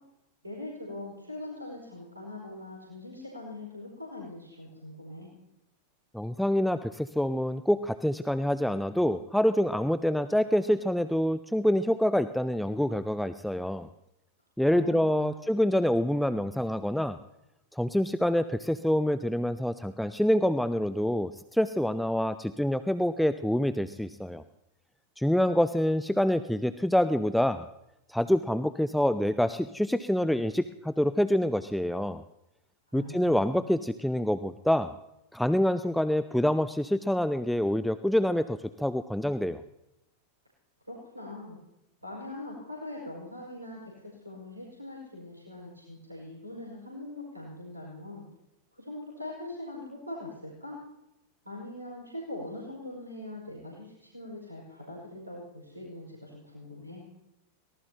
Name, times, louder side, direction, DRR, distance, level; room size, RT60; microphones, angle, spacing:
voice 1, 0.4-5.3 14.6-15.4 32.9-33.7 40.9-41.6 42.0-43.9 44.2-48.3 48.7-50.8 51.4-57.0, left 1 dB, 85° right, -3 dB, 5.4 m, -42 dB
voice 2, 6.1-13.9 14.6-17.2 17.7-24.4 25.2-27.7 28.1-32.2 32.9-34.9 35.3-39.6, equal, ahead, 12 dB, 0.6 m, -26 dB
23.5 x 19.0 x 2.9 m, 0.89 s
figure-of-eight pair, 90°, 0 cm